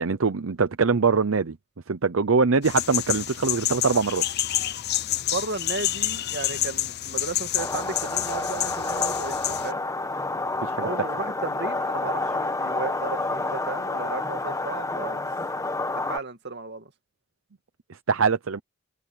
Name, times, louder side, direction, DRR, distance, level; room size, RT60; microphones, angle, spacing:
voice 1, 0.0-1.6 1.9-4.2 10.6-10.8 17.9-18.6, right 4 dB, 80° right, 0.7 m, -23 dB
sound 1, 2.6-9.7, left 13 dB, 55° left, 0.6 m, -28 dB
voice 2, 5.2-9.8 10.8-15.2 15.9-16.9, right 3 dB, 55° right, 2.2 m, -34 dB
sound 2, 7.6-16.2, left 2 dB, 15° left, 1.3 m, -29 dB
open air
head